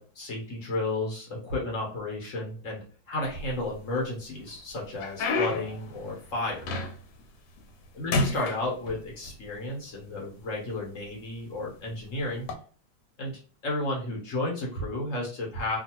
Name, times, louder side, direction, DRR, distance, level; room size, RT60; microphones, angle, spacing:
voice 1, 0.0-6.6 7.9-12.5 13.2-13.3 13.6-15.8, left 2 dB, 50° left, -2 dB, 1.2 m, -32 dB
sound 1, 3.2-4.0 4.5-7.2 7.6-7.9 8.1-9.3 10.2-10.3 11.0-11.2 12.3-12.5, left 3 dB, 80° left, 1.3 m, -31 dB
2.8 x 2.5 x 2.8 m, 0.41 s
omnidirectional pair, 1.8 m